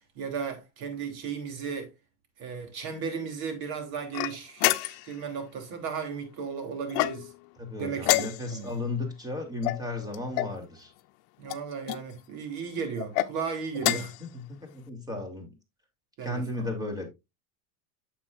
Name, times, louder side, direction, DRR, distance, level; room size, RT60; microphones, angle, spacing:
voice 1, 0.1-1.9 2.4-7.3 7.8-8.7 11.4-14.1 16.2-16.6, right 6 dB, 50° right, 3.2 m, -35 dB
sound 1, 4.1-5.2 6.9-7.5 8.0-8.7 9.6-10.6 11.5-12.0 13.0-13.3 13.8-14.2, left 18 dB, 70° left, 0.8 m, -28 dB
voice 2, 7.6-10.9 13.8-14.0 14.3-15.5 16.2-17.1, left 2 dB, 10° right, 2.9 m, -34 dB
9.4 x 7.2 x 2.5 m
supercardioid pair, 120°, 46 cm